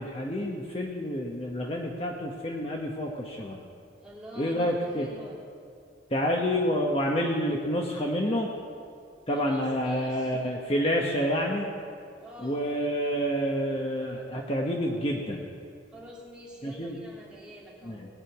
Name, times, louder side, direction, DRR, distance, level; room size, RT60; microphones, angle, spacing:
voice 1, 0.0-3.6 4.4-5.1 6.1-8.5 9.3-11.7 12.4-15.4 16.6-17.0 17.8-18.1, equal, 35° left, 0 dB, 1.1 m, -28 dB
voice 2, 4.0-5.4 9.3-10.3 12.2-12.6 15.9-18.1, equal, 5° right, -6 dB, 3.2 m, -46 dB
18.5 x 6.7 x 9.2 m, 2.3 s
head